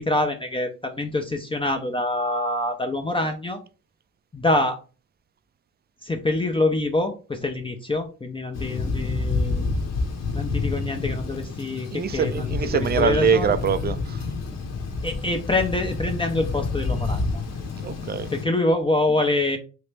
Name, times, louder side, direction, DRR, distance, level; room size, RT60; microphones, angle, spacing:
voice 1, 0.0-3.6 4.3-4.8 6.0-9.7 10.3-13.5 15.0-17.4 18.3-19.6, left 2 dB, 15° left, 0.5 m, -25 dB
Thunder, 8.5-18.4, left 3 dB, 55° left, 0.9 m, -28 dB
voice 2, 11.9-14.2 17.8-18.3, right 7 dB, 30° right, 0.4 m, -24 dB
3.1 x 2.8 x 3.3 m
cardioid pair, 80°, 32 cm